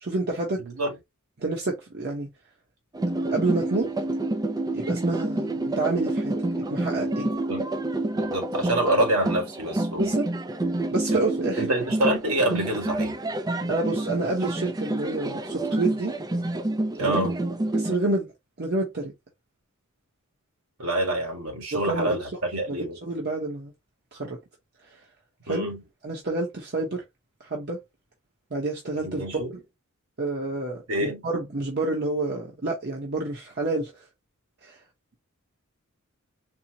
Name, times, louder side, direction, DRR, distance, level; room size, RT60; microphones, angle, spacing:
voice 1, 0.0-0.6 1.4-2.3 3.0-3.9 4.7-7.3 10.0-10.3 10.9-11.7 13.7-16.2 17.0-17.2 17.7-18.3 18.6-19.1 21.7-22.2 22.7-23.7 24.1-24.4 25.5-25.7 26.0-27.0 27.5-27.8 28.5-29.6 30.2-33.9 34.6-34.8, right 2 dB, 50° right, 0.9 m, -28 dB
voice 2, 0.6-0.9 7.5-7.6 8.1-10.1 11.1-11.2 11.6-13.2 17.0-17.3 20.8-23.0 25.5-25.8 29.0-29.5 30.9-31.2, right 1 dB, 75° right, 1.6 m, -27 dB
sound 1, 2.9-18.0, right 2 dB, 20° right, 0.4 m, -28 dB
4.3 x 2.1 x 2.7 m
head